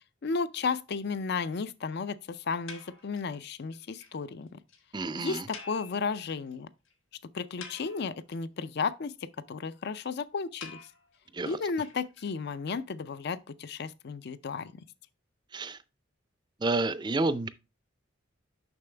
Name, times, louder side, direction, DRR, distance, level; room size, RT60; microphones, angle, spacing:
voice 1, 0.2-4.6 5.1-6.7 7.3-10.8 11.4-14.7, left 5 dB, 55° left, 0.5 m, -33 dB
sound 1, 2.7-3.4 3.7-3.8 4.0-4.1 4.4-4.5 4.7-4.8 5.5-6.5 6.9-7.0 7.4-8.3 10.6-12.6, left 5 dB, 90° left, 1.3 m, -47 dB
voice 2, 4.9-5.4 11.3-11.6 15.5-15.8 16.6-17.5, right 2 dB, 20° right, 0.4 m, -29 dB
7.0 x 5.9 x 3.3 m
head